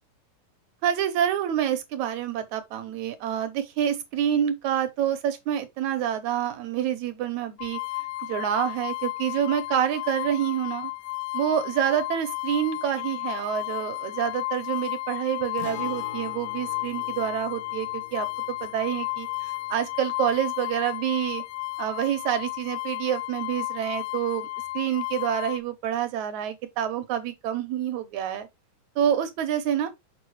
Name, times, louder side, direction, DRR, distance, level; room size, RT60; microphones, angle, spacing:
voice 1, 0.8-7.8 8.2-10.9 11.3-18.3 18.6-21.4 21.8-24.5 24.7-28.5 29.0-29.9, right 10 dB, 75° right, 2.1 m, -27 dB
sound 1, 7.6-25.6, left 21 dB, 80° left, 1.8 m, -33 dB
Guitar, 15.6-23.2 23.5-23.6 25.6-25.7, left 7 dB, 60° left, 2.2 m, -47 dB
6.7 x 5.5 x 3.1 m
omnidirectional pair, 3.6 m